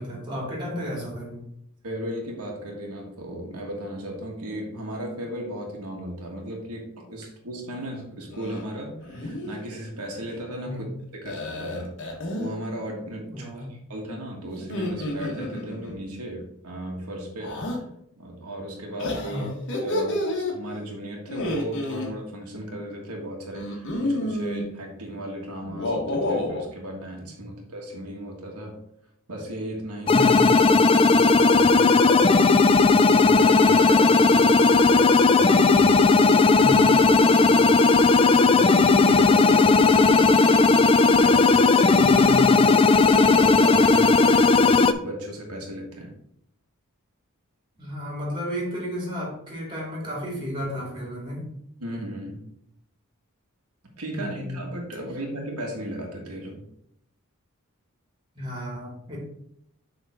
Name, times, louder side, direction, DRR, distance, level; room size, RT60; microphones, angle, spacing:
voice 1, 0.0-1.4 10.6-10.9 13.3-13.7 19.3-19.5 27.4-27.5 30.1-30.6 36.6-36.8 42.0-42.8 47.8-51.5 54.1-54.6 58.3-59.2, equal, 20° right, -2 dB, 2.4 m, -32 dB
voice 2, 1.8-10.9 11.1-17.6 18.2-19.5 19.8-28.8 29.3-30.3 31.1-32.4 33.1-36.8 37.1-40.6 41.1-42.1 43.0-46.1 51.8-52.5 54.0-56.6, right 1 dB, 85° right, 0 dB, 1.5 m, -36 dB
sound 1, 8.3-8.7 9.0-9.5 11.3-12.5 14.6-16.0 17.4-17.8 19.0-20.5 21.3-22.1 23.5-24.6 25.6-26.6, left 1 dB, 55° left, 1.5 m, -29 dB
sound 2, 30.1-44.9, left 3 dB, 25° left, 0.3 m, -17 dB
7.2 x 3.7 x 4.8 m, 0.75 s
head